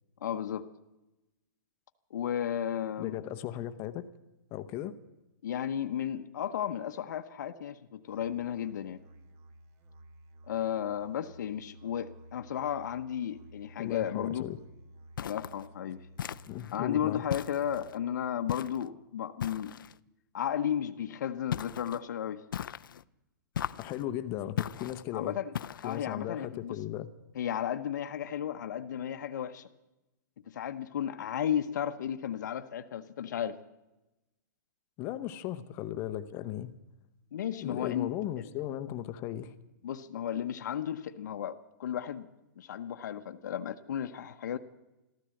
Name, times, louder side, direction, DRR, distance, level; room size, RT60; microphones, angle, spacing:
voice 1, 0.2-0.7 2.1-3.2 5.4-9.0 10.5-14.5 15.2-16.0 16.7-19.8 20.3-22.4 25.1-25.5 25.8-26.8 27.3-29.6 30.5-33.6 37.3-38.1 38.4-38.5 39.8-42.3 42.6-44.6, left 9 dB, 60° left, 0.8 m, -34 dB
voice 2, 3.0-4.1 4.5-4.9 13.8-14.6 16.5-17.2 23.8-25.4 25.8-27.1 35.0-36.8 37.6-39.5, left 12 dB, 20° left, 0.7 m, -37 dB
Musical instrument, 8.1-18.0, right 1 dB, 20° right, 0.8 m, -54 dB
sound 1, 15.2-15.6 16.2-16.8 17.3-18.0 18.5-18.9 19.4-20.0 21.5-22.0 22.5-23.0 23.5-24.0 24.6-25.0 25.5-26.0, left 9 dB, 85° left, 0.5 m, -37 dB
13.5 x 13.5 x 7.6 m
hypercardioid pair, 165°, 11 cm